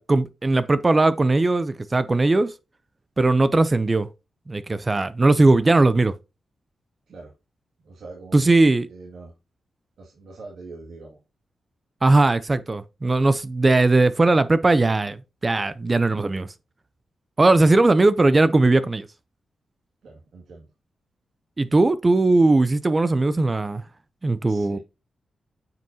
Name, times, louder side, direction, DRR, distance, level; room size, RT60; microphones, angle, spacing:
voice 1, 0.0-2.5 3.2-4.1 4.5-6.1 8.3-8.9 12.0-16.5 17.4-19.1 21.6-23.8 24.2-24.8, right 2 dB, 25° right, 0.5 m, -19 dB
voice 2, 7.8-8.5 8.9-9.3 10.0-11.2 20.0-20.7 24.3-24.8, right 3 dB, 75° right, 2.0 m, -43 dB
9.1 x 5.3 x 2.7 m
cardioid pair, 105°, 0 cm